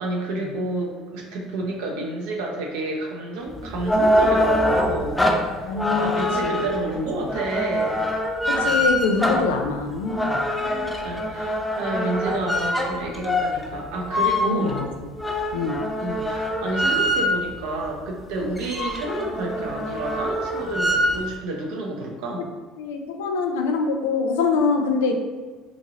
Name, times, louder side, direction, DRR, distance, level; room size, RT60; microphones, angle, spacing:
voice 1, 0.0-8.1 10.5-14.8 16.0-22.5, right 2 dB, 75° right, -1 dB, 0.6 m, -30 dB
sound 1, 3.5-17.6 18.1-18.2 18.4-21.3, equal, 10° left, 0.4 m, -24 dB
voice 2, 5.6-6.1 6.4-6.6 7.0-7.1 8.5-10.4 14.5-14.9 15.5-15.8 22.8-25.1, left 4 dB, 85° left, 4 dB, 0.3 m, -24 dB
3.0 x 2.7 x 2.5 m, 1.3 s
hypercardioid pair, 80°, 0 cm